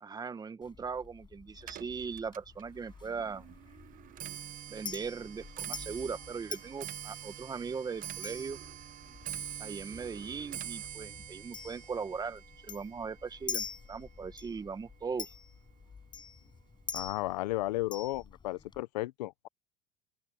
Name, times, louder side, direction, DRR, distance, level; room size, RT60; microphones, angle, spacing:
voice 1, 0.0-3.4 4.7-8.6 9.6-15.3, right 5 dB, 20° right, 1.3 m, -39 dB
Chink clink, 0.6-18.8, left 5 dB, 20° left, 6.4 m, -47 dB
Clock, 1.6-14.9 15.3-15.7 16.5-16.6 17.0-17.3 17.6-17.7, right 11 dB, 40° right, 1.1 m, -45 dB
voice 2, 16.9-19.5, left 18 dB, 85° left, 0.8 m, -34 dB
open air
supercardioid pair, 110°, 20 cm